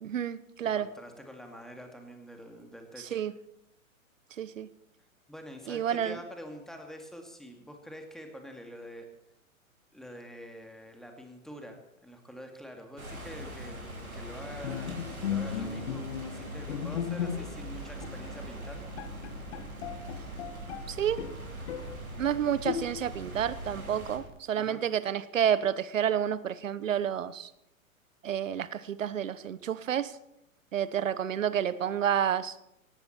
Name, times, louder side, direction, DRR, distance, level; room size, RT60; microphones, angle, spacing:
voice 1, 0.0-0.9 3.1-3.3 4.4-4.7 5.7-6.2 20.9-21.2 22.2-27.5 28.2-30.2 30.7-32.6, right 9 dB, 65° right, 17 dB, 1.1 m, -30 dB
voice 2, 0.7-3.3 5.3-9.1 9.9-19.0 24.6-24.8, equal, ahead, 3 dB, 2.4 m, -46 dB
sound 1, 13.0-24.2, equal, 85° right, 4.2 m, -42 dB
Bowed string instrument, 14.6-17.7 18.0-18.2 18.7-18.8 19.0-20.9 21.2-22.0 22.6-23.2, left 9 dB, 50° left, 1.7 m, -36 dB
sound 2, 17.5-24.4, right 10 dB, 25° right, 1.3 m, -50 dB
18.0 x 16.5 x 4.5 m, 0.83 s
figure-of-eight pair, 115°, 42 cm